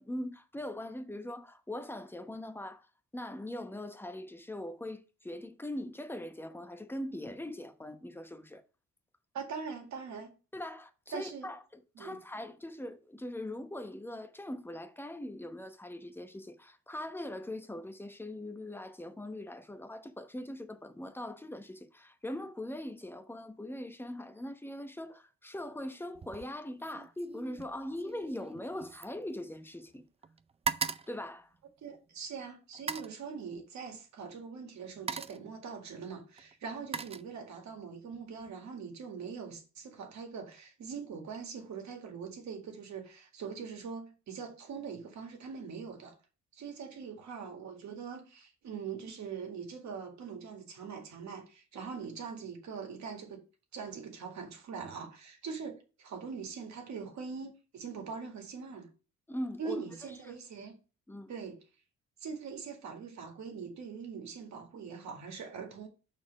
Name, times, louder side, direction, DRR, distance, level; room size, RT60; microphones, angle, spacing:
voice 1, 0.0-2.9 3.1-8.6 10.5-30.0 31.1-31.5 59.3-59.8 61.1-61.3, left 1 dB, 5° left, 0.9 m, -41 dB
voice 2, 9.3-10.3 11.1-11.5 12.0-12.2 31.8-46.1 46.5-53.4 53.7-58.9 59.6-60.8 61.3-61.6 62.2-65.9, right 6 dB, 65° right, 2.0 m, -42 dB
sound 1, 26.1-26.5 26.8-29.9 30.2-32.1 32.7-33.2 34.2-34.4 34.8-35.5 36.4-37.8 38.1-38.5, right 5 dB, 20° right, 0.4 m, -40 dB
5.9 x 4.4 x 6.0 m
cardioid pair, 90°, 30 cm